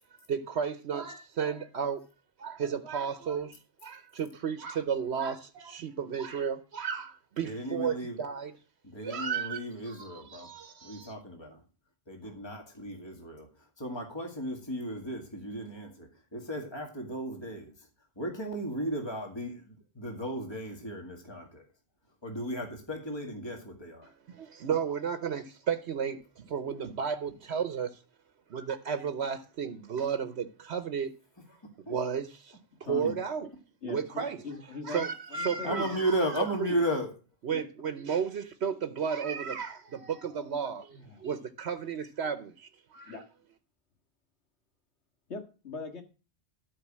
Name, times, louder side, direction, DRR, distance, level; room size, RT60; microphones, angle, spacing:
voice 1, 0.3-2.0 2.4-8.5 9.0-11.1 24.3-28.0 28.5-31.1 31.9-32.6 32.9-33.5 33.8-34.4 34.8-36.0 36.6-36.7 37.4-43.2, right 7 dB, 70° right, 1.1 m, -33 dB
voice 2, 7.4-8.2 8.8-10.5 10.8-11.6 12.1-17.9 18.2-21.6 22.2-24.1 31.5-31.6 31.9-32.0 35.6-37.1, right 1 dB, 25° left, 2.1 m, -35 dB
voice 3, 32.8-33.1 33.8-34.0 34.3-35.0 35.3-36.0 37.5-37.6 40.9-41.3 43.1-43.2 45.3-46.0, left 4 dB, 80° left, 2.1 m, -40 dB
13.0 x 5.2 x 7.4 m
omnidirectional pair, 1.1 m